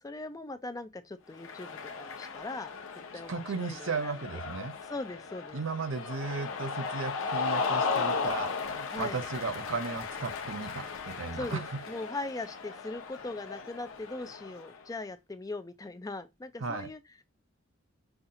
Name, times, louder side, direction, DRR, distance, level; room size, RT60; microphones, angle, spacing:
voice 1, 0.0-2.7 3.1-4.1 4.8-5.6 8.9-9.2 11.3-17.2, left 2 dB, 20° left, 0.4 m, -40 dB
Cheering, 1.3-14.8, left 4 dB, 85° left, 0.8 m, -36 dB
voice 2, 3.3-4.7 5.5-11.7 16.6-16.9, right 4 dB, 70° right, 0.7 m, -35 dB
5.6 x 2.4 x 2.7 m
head